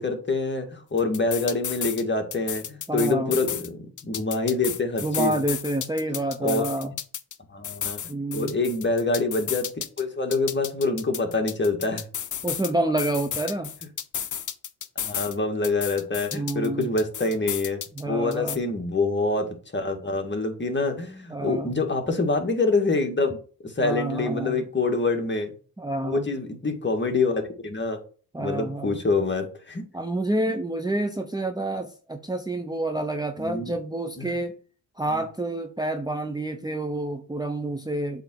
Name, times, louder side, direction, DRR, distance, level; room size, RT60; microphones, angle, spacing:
voice 1, 0.0-5.4 6.4-6.6 7.5-12.1 15.0-23.3 23.6-25.5 26.0-28.0 28.4-29.9 33.4-33.8 34.2-34.3 35.1-35.2, left 3 dB, 30° left, 3 dB, 2.0 m, -26 dB
sound 1, 1.0-2.0 2.3-3.7 4.0-7.4 7.6-10.0 10.3-12.7 13.0-15.4 15.6-18.0 18.3-18.6, left 9 dB, 50° left, 0.8 m, -33 dB
voice 2, 2.9-3.3 5.0-6.9 8.1-8.5 12.4-13.7 16.3-16.9 17.9-18.6 21.3-21.8 23.8-24.6 25.8-26.3 28.3-29.0 29.9-34.5 35.0-38.2, right 1 dB, 10° right, 6 dB, 0.9 m, -28 dB
7.9 x 3.6 x 6.4 m, 0.40 s
cardioid pair, 75°, 39 cm